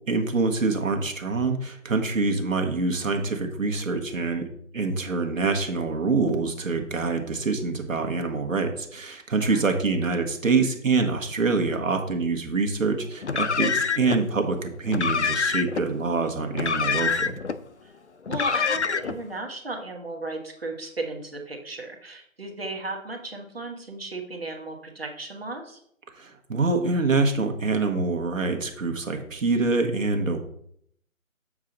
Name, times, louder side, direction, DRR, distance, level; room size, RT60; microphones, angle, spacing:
voice 1, 0.1-4.5 4.7-17.4 26.2-30.4, right 3 dB, 70° right, 4 dB, 1.4 m, -25 dB
Car, 13.2-14.2 14.9-15.8 16.5-17.6 18.3-19.2, left 5 dB, 60° left, 0.5 m, -26 dB
voice 2, 18.3-25.8, right 2 dB, 45° right, 2 dB, 1.2 m, -35 dB
7.4 x 4.7 x 3.9 m, 0.68 s
hypercardioid pair, 180°, 41 cm